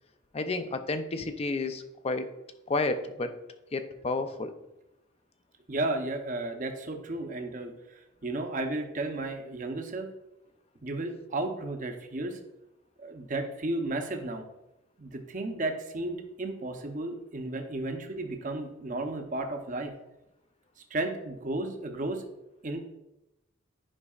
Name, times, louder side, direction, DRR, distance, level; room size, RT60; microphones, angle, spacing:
voice 1, 0.3-2.3 2.7-3.4 3.7-4.5, left 3 dB, 30° left, 9 dB, 0.4 m, -31 dB
voice 2, 5.7-10.1 10.8-12.4 13.0-14.4 15.0-19.9 20.9-22.3 22.6-22.9, right 2 dB, 40° right, 5 dB, 0.7 m, -33 dB
9.9 x 5.2 x 2.4 m, 0.90 s
head